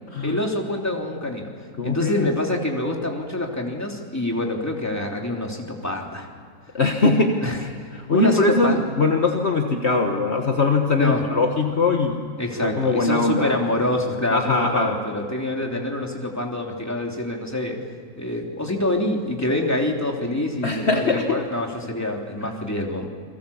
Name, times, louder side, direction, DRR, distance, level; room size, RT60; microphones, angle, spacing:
voice 1, 0.2-1.5 1.8-6.3 7.4-8.8 11.0-11.2 12.4-17.8 18.2-23.1, left 1 dB, 10° left, 0 dB, 3.2 m, -26 dB
voice 2, 1.8-2.3 6.7-12.3 12.6-13.5 14.3-15.0 20.6-21.4, left 3 dB, 50° left, 3 dB, 1.7 m, -21 dB
29.5 x 23.0 x 7.1 m, 2.1 s
omnidirectional pair, 1.5 m